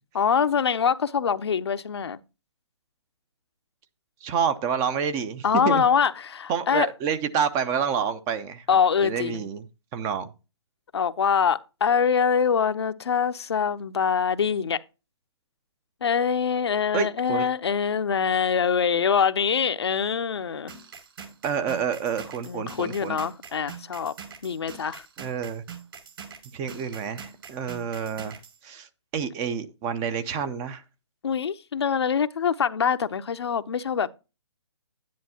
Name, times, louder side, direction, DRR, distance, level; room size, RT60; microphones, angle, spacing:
voice 1, 0.1-2.2 5.4-6.9 8.7-9.4 10.9-14.8 16.0-20.7 22.5-24.1 24.4-25.0 31.2-34.1, left 7 dB, 60° left, 0.8 m, -24 dB
voice 2, 4.2-5.9 6.5-8.6 9.0-9.6 9.9-10.3 16.9-17.5 21.4-23.2 25.2-25.6 26.5-28.3 28.6-28.9 29.1-30.8, right 7 dB, 20° right, 0.7 m, -28 dB
sound 1, 20.7-28.6, right 6 dB, 55° right, 6.0 m, -43 dB
11.0 x 10.5 x 2.9 m
figure-of-eight pair, 140°, 15 cm